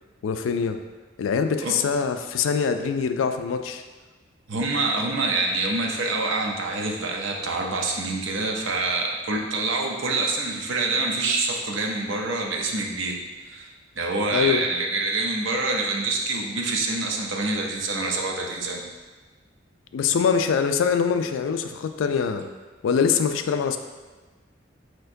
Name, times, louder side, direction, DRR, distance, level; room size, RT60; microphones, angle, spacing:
voice 1, 0.2-0.8 1.2-3.8 14.3-14.7 19.9-22.5 22.8-23.8, left 6 dB, 85° left, 8 dB, 0.3 m, -23 dB
voice 2, 4.5-13.7 14.0-18.8, right 3 dB, 75° right, 0 dB, 0.7 m, -26 dB
4.4 x 4.4 x 2.6 m, 1.3 s
head